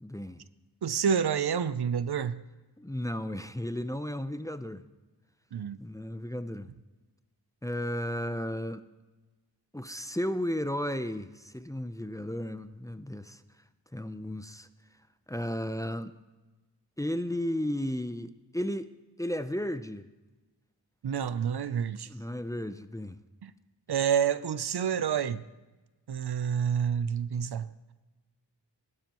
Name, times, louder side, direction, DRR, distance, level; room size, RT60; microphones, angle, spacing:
voice 1, 0.0-0.4 2.8-4.8 5.8-6.7 7.6-8.8 9.7-13.4 13.9-14.7 15.3-16.1 17.0-18.9 19.2-20.0 22.1-23.2, left 1 dB, 10° left, 0.6 m, -34 dB
voice 2, 0.8-2.4 5.5-5.8 21.0-22.1 23.4-23.5 23.9-25.4 26.1-27.7, right 7 dB, 70° right, 0.6 m, -28 dB
21.0 x 12.0 x 3.0 m
wide cardioid pair, 50°, 41 cm